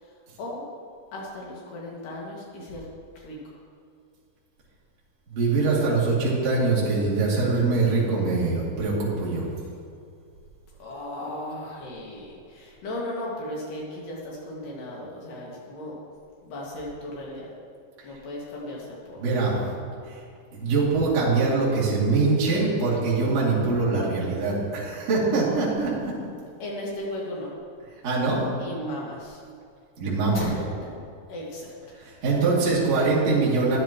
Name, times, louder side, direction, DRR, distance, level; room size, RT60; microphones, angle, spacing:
voice 1, 1.1-2.9 3.2-3.4 10.8-16.0 16.4-17.5 18.0-19.2 26.6-27.5 28.6-29.4 30.3-30.7 31.3-31.7, left 1 dB, 65° left, -4 dB, 3.5 m, -36 dB
voice 2, 5.3-9.5 19.2-19.6 20.1-20.2 20.5-26.1 28.0-28.4 30.0-30.5 32.0-33.8, right 3 dB, 45° right, -7 dB, 3.2 m, -23 dB
12.5 x 10.5 x 3.0 m, 2.3 s
omnidirectional pair, 4.4 m